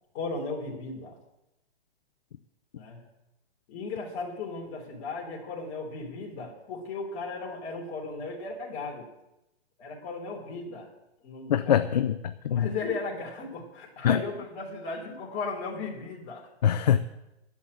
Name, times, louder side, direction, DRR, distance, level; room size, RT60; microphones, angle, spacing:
voice 1, 0.1-1.2 2.7-3.0 3.7-9.1 9.8-10.9 11.2-11.9 12.5-16.5 16.8-17.0, left 3 dB, 25° left, 3.4 m, -36 dB
voice 2, 11.5-12.7 14.0-14.2 16.6-17.0, left 9 dB, 40° left, 0.5 m, -23 dB
11.5 x 7.3 x 9.5 m
hypercardioid pair, 155°, 32 cm